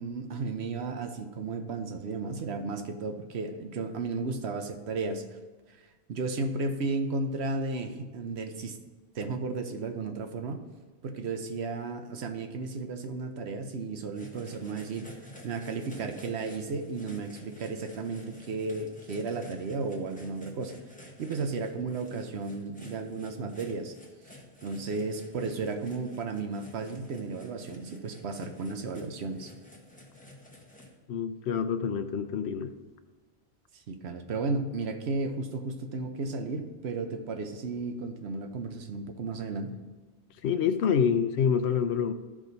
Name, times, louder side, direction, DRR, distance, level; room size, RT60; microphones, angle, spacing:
voice 1, 0.0-5.2 5.7-5.8 6.1-8.8 9.1-10.6 11.0-15.1 15.4-20.8 21.2-23.9 24.6-29.5 33.7-39.8, right 3 dB, 75° right, 7 dB, 1.0 m, -34 dB
sound 1, 14.1-30.9, left 1 dB, 10° left, 1.1 m, -51 dB
voice 2, 31.1-32.7 40.4-42.1, left 7 dB, 80° left, 10 dB, 0.9 m, -27 dB
13.0 x 4.9 x 4.0 m, 1.3 s
omnidirectional pair, 1.1 m